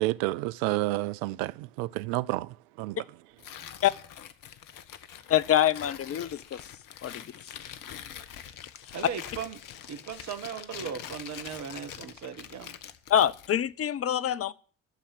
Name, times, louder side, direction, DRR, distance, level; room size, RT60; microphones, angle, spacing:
voice 1, 0.0-2.5 2.8-3.0, right 18 dB, 65° right, 0.5 m, -29 dB
Tearing, 3.4-13.6, left 9 dB, 55° left, 1.3 m, -44 dB
voice 2, 5.3-6.7 7.0-7.3 13.1-14.5, left 10 dB, 35° left, 0.8 m, -25 dB
voice 3, 8.9-9.6 9.9-12.7, right 7 dB, 45° right, 1.8 m, -38 dB
12.0 x 7.1 x 8.9 m
figure-of-eight pair, 55°, 38 cm